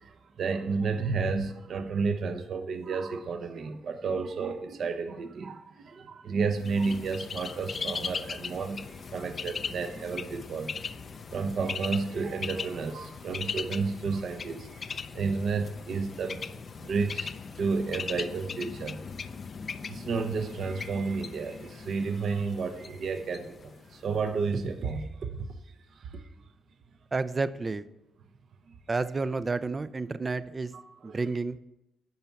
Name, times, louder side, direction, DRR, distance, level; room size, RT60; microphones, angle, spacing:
voice 1, 0.0-10.7 11.3-19.0 19.9-25.6 25.9-26.2 30.7-31.3, right 4 dB, 55° right, 7 dB, 0.8 m, -32 dB
Bird, 6.6-24.4, left 5 dB, 45° left, 0.5 m, -39 dB
voice 2, 27.1-27.8 28.9-30.7 31.0-31.6, right 3 dB, 25° right, 14 dB, 0.4 m, -30 dB
11.0 x 4.6 x 7.1 m, 0.89 s
cardioid pair, 90°, 0 cm